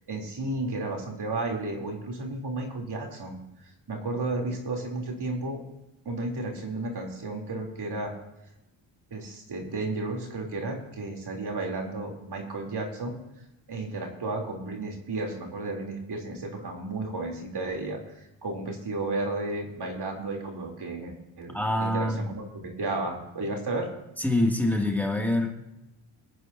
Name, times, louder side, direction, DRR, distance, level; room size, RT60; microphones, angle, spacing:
voice 1, 0.1-5.6 6.1-8.1 9.1-13.1 13.7-23.9, right 2 dB, 50° right, 1 dB, 3.5 m, -33 dB
voice 2, 21.5-22.3 24.2-25.6, left 1 dB, 5° left, 1 dB, 2.5 m, -25 dB
24.5 x 9.6 x 2.8 m, 0.91 s
supercardioid pair, 60°, 49 cm